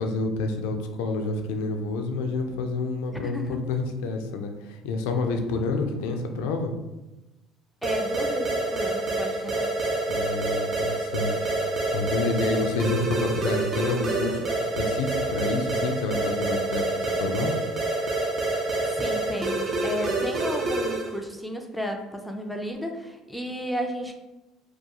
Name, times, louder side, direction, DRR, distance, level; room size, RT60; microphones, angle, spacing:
voice 1, 0.0-6.7 10.1-17.5, left 3 dB, 85° left, 5 dB, 0.3 m, -29 dB
voice 2, 3.2-3.6 7.8-9.6 18.6-24.1, equal, ahead, 3 dB, 0.4 m, -33 dB
sound 1, 7.8-21.2, right 2 dB, 45° right, 0.6 m, -27 dB
2.3 x 2.3 x 2.8 m, 1.0 s
supercardioid pair, 95°, 0 cm